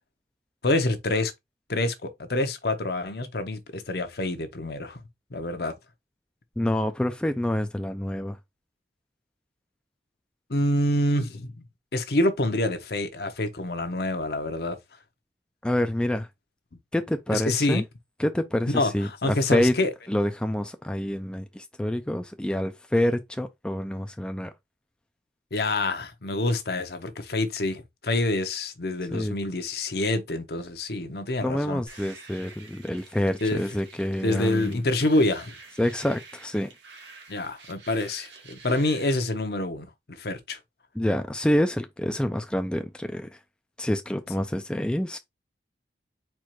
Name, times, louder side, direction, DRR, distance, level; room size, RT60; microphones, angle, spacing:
voice 1, 0.6-1.3 1.7-5.0 5.3-5.7 10.5-11.6 11.9-14.8 17.3-17.8 18.7-19.9 25.5-31.8 33.4-33.6 34.2-35.5 37.3-40.6, left 2 dB, 60° left, 0.8 m, -27 dB
voice 2, 6.6-8.4 15.6-16.3 16.9-17.8 18.2-19.7 20.1-24.5 29.1-29.3 31.4-34.8 35.8-36.7 40.9-43.4 43.8-45.2, left 1 dB, 5° left, 0.3 m, -27 dB
sound 1, 31.9-39.2, right 4 dB, 85° right, 1.6 m, -48 dB
4.5 x 2.4 x 4.5 m
head